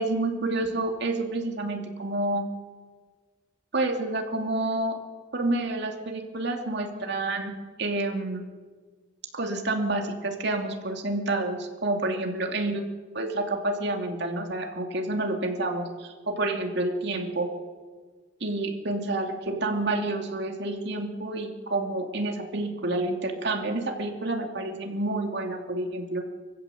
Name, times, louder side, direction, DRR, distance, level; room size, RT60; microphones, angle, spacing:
voice 1, 0.0-2.5 3.7-5.0 5.3-7.5 7.8-8.4 9.3-12.9 13.1-17.5 18.4-26.2, right 2 dB, 65° right, 3 dB, 3.0 m, -29 dB
25.0 x 15.5 x 7.9 m, 1.5 s
head